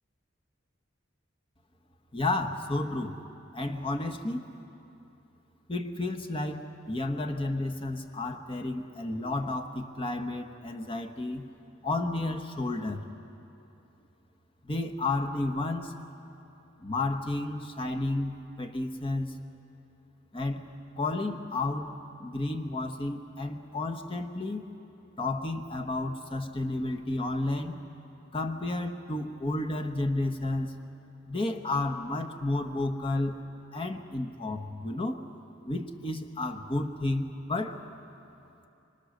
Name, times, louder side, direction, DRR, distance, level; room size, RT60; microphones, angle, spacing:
voice 1, 2.1-3.2 3.5-4.4 5.7-11.5 11.8-13.0 14.6-15.9 16.8-19.3 20.3-21.9 22.2-24.6 25.2-27.8 28.3-30.7 31.3-33.4 33.7-35.2 35.7-37.8, left 2 dB, 25° left, 4 dB, 1.1 m, -32 dB
26.0 x 24.5 x 6.6 m, 2.8 s
head